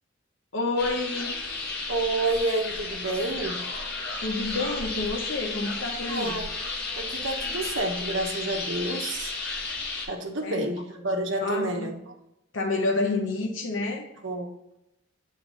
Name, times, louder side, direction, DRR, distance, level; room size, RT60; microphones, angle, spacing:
voice 1, 0.5-1.4 4.2-6.4 10.4-10.7 11.4-11.9 12.5-14.1, left 3 dB, 70° left, 1 dB, 1.0 m, -29 dB
sound 1, 0.8-10.1, left 3 dB, 55° left, 1.4 m, -33 dB
voice 2, 1.9-3.6 6.1-6.6 6.9-9.3 10.0-12.1 14.2-14.8, right 2 dB, 65° right, 2 dB, 1.2 m, -29 dB
8.1 x 4.3 x 4.0 m, 0.88 s
head